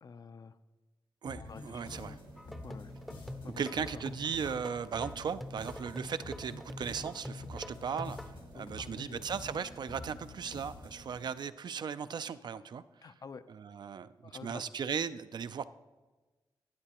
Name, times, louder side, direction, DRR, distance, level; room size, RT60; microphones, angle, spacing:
voice 1, 0.0-0.6 1.4-2.2 2.6-2.9 3.4-4.1 8.5-9.3 13.0-13.4 14.2-14.7, left 5 dB, 50° left, 12 dB, 0.4 m, -49 dB
voice 2, 1.2-2.2 3.4-8.2 8.5-12.8 13.5-15.7, right 7 dB, 60° right, 13 dB, 0.3 m, -37 dB
sound 1, 1.3-11.1, left 2 dB, 70° left, 1.2 m, -48 dB
sound 2, 1.4-11.3, right 1 dB, 90° right, 1.8 m, -56 dB
sound 3, 2.4-8.3, left 1 dB, ahead, 0.5 m, -45 dB
12.5 x 8.7 x 2.9 m, 1.2 s
cardioid pair, 85°, 8 cm